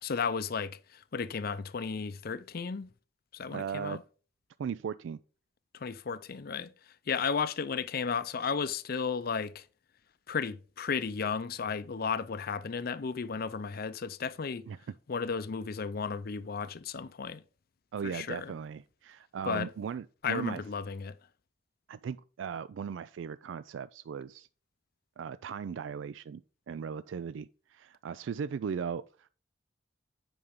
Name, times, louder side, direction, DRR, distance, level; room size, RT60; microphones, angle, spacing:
voice 1, 0.0-2.9 3.3-4.0 5.7-6.7 7.1-9.7 10.3-14.7 15.1-17.4 18.0-18.5 19.5-19.7 20.2-21.2, left 5 dB, 55° left, 0.5 m, -34 dB
voice 2, 3.5-4.0 4.6-5.2 14.7-14.8 17.9-20.6 21.9-24.5 25.2-26.4 26.7-29.3, right 7 dB, 90° right, 0.3 m, -37 dB
8.7 x 5.3 x 3.7 m
head